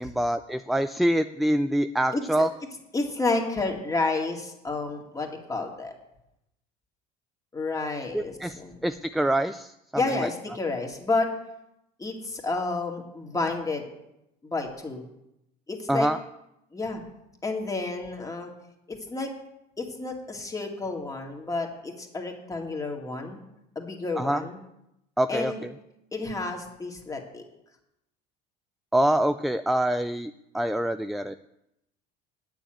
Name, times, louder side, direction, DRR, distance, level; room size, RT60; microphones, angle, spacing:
voice 1, 0.0-2.5 8.1-9.7 10.2-10.3 15.9-16.2 24.2-24.4 25.2-25.7 28.9-31.4, right 1 dB, ahead, 10 dB, 0.3 m, -25 dB
voice 2, 2.9-5.9 7.5-8.8 9.9-11.3 12.0-13.8 14.4-15.0 15.7-16.1 16.7-17.0 17.4-18.5 18.9-19.3 19.8-23.4 23.8-24.6 25.3-25.6 26.1-27.4, left 3 dB, 15° left, 2 dB, 2.3 m, -30 dB
9.0 x 7.2 x 9.0 m, 0.85 s
supercardioid pair, 110°, 21 cm